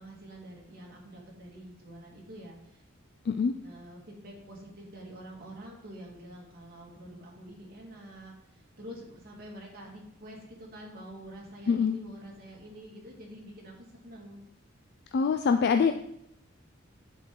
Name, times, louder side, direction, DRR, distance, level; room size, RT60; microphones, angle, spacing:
voice 1, 0.0-2.8 3.6-13.7 14.0-14.4, equal, 50° right, -2 dB, 1.9 m, -47 dB
voice 2, 11.7-12.0 15.1-15.9, left 5 dB, 55° left, 6 dB, 0.4 m, -24 dB
9.6 x 4.5 x 3.7 m, 0.75 s
head